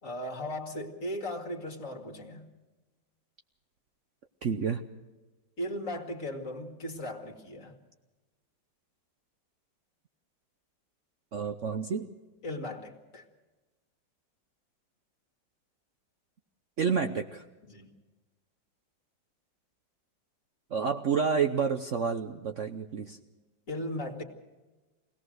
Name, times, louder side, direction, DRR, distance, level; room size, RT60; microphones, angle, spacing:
voice 1, 0.0-2.5 5.6-7.7 12.4-13.3 17.7-17.9 23.7-24.2, left 1 dB, 45° left, 4 dB, 2.4 m, -37 dB
voice 2, 4.4-4.8 11.3-12.1 16.8-17.4 20.7-23.2, right 6 dB, 55° right, 6 dB, 1.0 m, -29 dB
23.5 x 17.5 x 6.4 m, 1.2 s
omnidirectional pair, 2.0 m